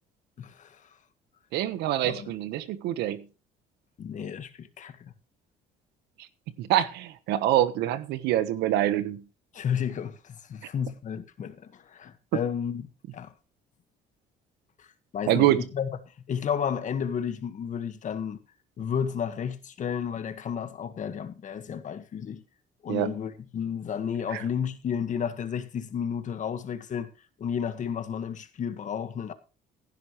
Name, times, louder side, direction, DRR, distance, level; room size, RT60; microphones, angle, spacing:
voice 1, 0.4-0.8 2.0-2.3 4.0-5.1 9.5-12.9 13.1-13.3 14.8-14.9 15.1-15.9 16.3-18.4 18.8-22.4 22.8-27.1 27.4-29.3, left 7 dB, 45° left, 1.7 m, -32 dB
voice 2, 1.5-3.2 6.6-9.2 15.3-15.6 22.9-23.1, right 13 dB, 85° right, 1.3 m, -25 dB
16.5 x 10.5 x 3.2 m
cardioid pair, 110°, 17 cm